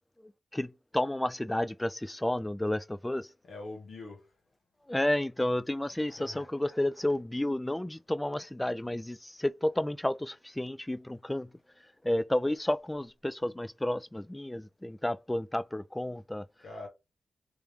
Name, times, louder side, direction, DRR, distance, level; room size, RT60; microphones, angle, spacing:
voice 1, 0.2-3.3 4.9-11.5 11.8-16.5, left 1 dB, 15° left, 0.3 m, -31 dB
voice 2, 3.5-4.3 6.2-6.4 16.6-16.9, left 2 dB, 75° left, 1.7 m, -43 dB
3.4 x 3.0 x 3.4 m
cardioid pair, 50°, 0 cm